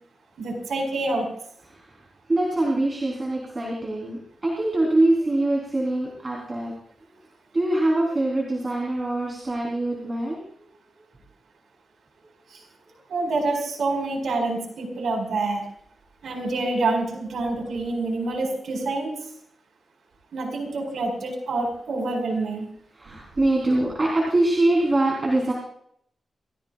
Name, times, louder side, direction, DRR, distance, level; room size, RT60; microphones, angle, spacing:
voice 1, 0.4-1.3 12.5-12.6 13.1-15.6 16.2-19.1 20.3-22.6, right 2 dB, 80° right, 1 dB, 4.9 m, -27 dB
voice 2, 2.3-6.7 7.5-10.4 23.0-25.5, right 2 dB, 25° right, -3 dB, 3.7 m, -23 dB
28.0 x 15.5 x 2.4 m, 0.68 s
wide cardioid pair, 175°, 0 cm